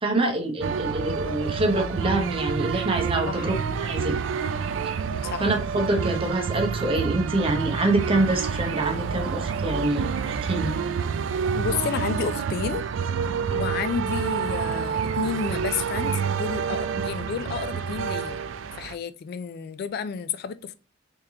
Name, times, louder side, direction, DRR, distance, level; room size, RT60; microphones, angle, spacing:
voice 1, 0.0-3.5 3.8-4.2 4.8-5.0 5.4-10.7, right 2 dB, 30° right, 0.8 m, -26 dB
sound 1, 0.6-18.9, right 6 dB, 85° right, 0.3 m, -28 dB
voice 2, 11.5-12.8 13.5-18.4 18.8-20.7, left 6 dB, 55° left, 0.3 m, -31 dB
3.6 x 3.3 x 2.7 m
head